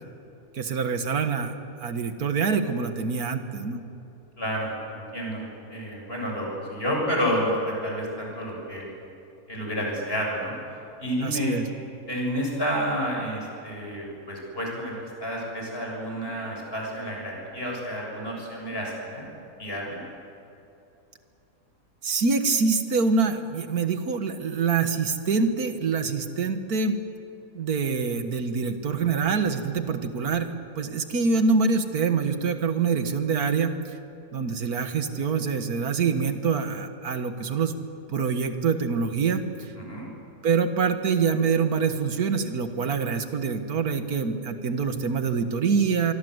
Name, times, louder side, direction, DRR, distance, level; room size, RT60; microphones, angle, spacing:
voice 1, 0.6-1.6 1.8-3.8 11.2-11.6 22.0-27.0 27.5-33.8 34.3-37.8 38.1-39.4 40.4-46.1, right 5 dB, 80° right, 8 dB, 2.0 m, -25 dB
voice 2, 4.4-5.4 5.7-8.9 9.5-10.5 11.0-11.5 12.1-19.3 19.6-20.0 39.8-40.1, equal, 40° left, -2 dB, 7.5 m, -30 dB
24.5 x 24.5 x 8.1 m, 2.7 s
omnidirectional pair, 1.6 m